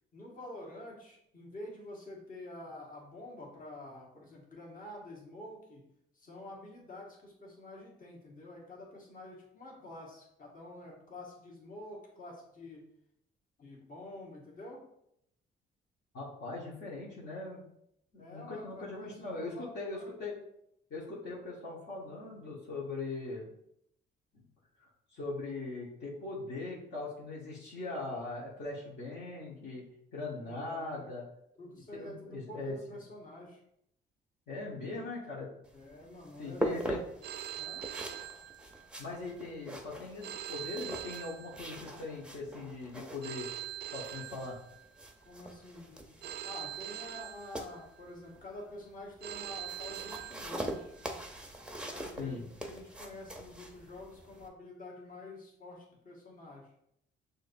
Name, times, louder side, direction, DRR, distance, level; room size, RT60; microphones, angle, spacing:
voice 1, 0.1-5.8 6.2-12.8 13.6-14.8 18.2-20.1 30.4-31.1 31.6-33.6 35.7-36.9 37.6-37.8 45.2-50.9 51.8-56.7, left 1 dB, 45° left, -3 dB, 1.5 m, -48 dB
voice 2, 16.1-17.6 18.1-20.4 20.9-23.5 24.3-24.4 25.1-29.8 30.1-31.2 31.9-32.8 34.5-35.5 36.4-37.0 39.0-43.5 43.9-44.6 52.2-52.4, left 3 dB, 60° left, -6 dB, 1.3 m, -40 dB
sound 1, 35.6-54.5, right 1 dB, 5° right, 0.6 m, -43 dB
Telephone, 37.2-39.1 40.2-42.1 43.2-45.1 46.2-48.1 49.2-51.1, right 11 dB, 55° right, 0.4 m, -43 dB
6.2 x 2.7 x 2.6 m, 0.76 s
cardioid pair, 90°, 20 cm